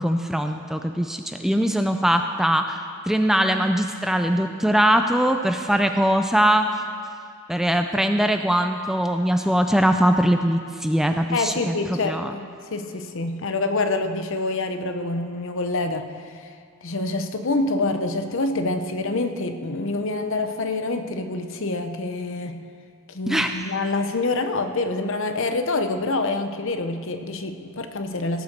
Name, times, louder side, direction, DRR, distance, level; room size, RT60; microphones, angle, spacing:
voice 1, 0.0-2.8 3.1-6.7 7.5-12.3 23.3-23.6, equal, ahead, 6 dB, 0.3 m, -21 dB
voice 2, 11.3-16.1 16.3-16.5 16.8-22.6 23.1-28.4, left 2 dB, 60° left, 8 dB, 0.8 m, -26 dB
16.0 x 6.9 x 6.6 m, 2.3 s
head